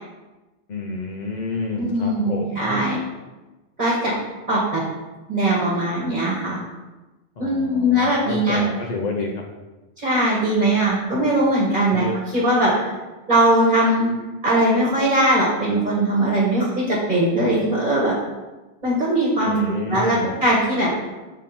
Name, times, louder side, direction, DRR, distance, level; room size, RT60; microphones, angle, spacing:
voice 1, 0.7-2.8 7.4-9.3 11.9-12.2 19.4-20.3, left 3 dB, 50° left, 0 dB, 0.6 m, -29 dB
voice 2, 1.8-3.0 3.8-4.1 4.5-4.8 5.3-6.6 7.4-8.6 10.0-12.0 12.3-12.9 13.3-14.1 14.4-18.2 18.8-19.6 19.9-20.9, right 1 dB, 40° right, -5 dB, 1.5 m, -20 dB
6.3 x 3.6 x 4.2 m, 1.1 s
omnidirectional pair, 1.2 m